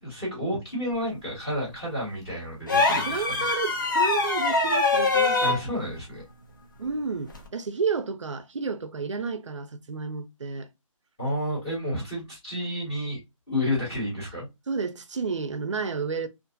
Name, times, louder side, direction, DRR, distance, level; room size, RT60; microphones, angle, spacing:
voice 1, 0.0-3.5 5.4-6.2 11.2-13.2 13.5-14.5, left 1 dB, 10° left, 1.1 m, -30 dB
sound 1, 2.7-5.6 7.3-7.5, left 3 dB, 35° left, 0.6 m, -23 dB
voice 2, 2.9-5.6 6.8-10.7 14.7-16.3, right 5 dB, 60° right, 0.5 m, -31 dB
2.5 x 2.2 x 2.5 m
hypercardioid pair, 175°, 18 cm